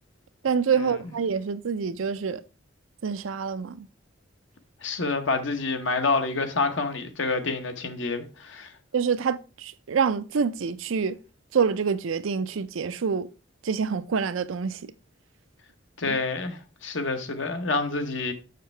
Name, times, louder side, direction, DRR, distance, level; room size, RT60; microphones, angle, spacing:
voice 1, 0.4-2.4 3.0-3.9 8.9-11.2 11.5-13.3 13.6-14.9 16.0-16.2, right 6 dB, 85° right, 0.5 m, -26 dB
voice 2, 4.8-8.7 16.0-18.3, left 3 dB, 70° left, 1.0 m, -28 dB
6.6 x 6.4 x 3.3 m
head